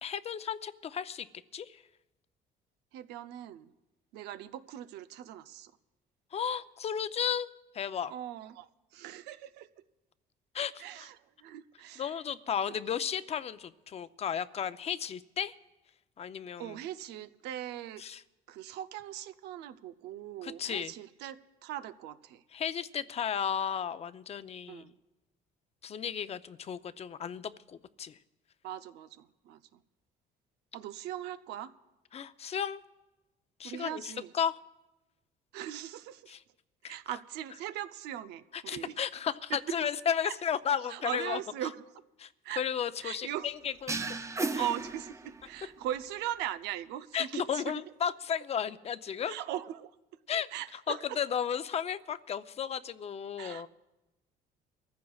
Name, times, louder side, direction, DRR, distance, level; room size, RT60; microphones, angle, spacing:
voice 1, 0.0-1.3 1.5-1.8 6.3-7.5 7.7-8.1 10.5-10.8 12.0-15.5 16.2-16.7 18.0-18.2 20.4-20.9 22.5-24.9 25.8-28.2 32.1-32.8 33.6-34.6 36.3-36.4 36.8-37.0 38.7-41.4 42.2-44.0 44.5-44.6 47.1-49.3 50.3-50.5 50.9-53.7, left 8 dB, 40° left, 13 dB, 0.6 m, -34 dB
voice 2, 2.9-3.7 4.1-5.7 8.1-9.8 10.8-12.2 16.6-18.0 18.5-22.4 24.7-25.0 28.6-29.8 30.7-31.7 33.6-34.3 35.5-36.4 36.8-39.0 39.5-39.9 40.2-40.4 40.7-41.8 42.4-42.6 43.0-43.5 44.6-47.7 49.3-50.0 50.5-51.2 53.4-53.7, right 11 dB, 90° right, 12 dB, 0.6 m, -40 dB
Fatal Fart, 43.9-45.6, right 3 dB, 15° right, 0.5 m, -35 dB
23.5 x 14.5 x 2.4 m, 1.0 s
cardioid pair, 110°, 17 cm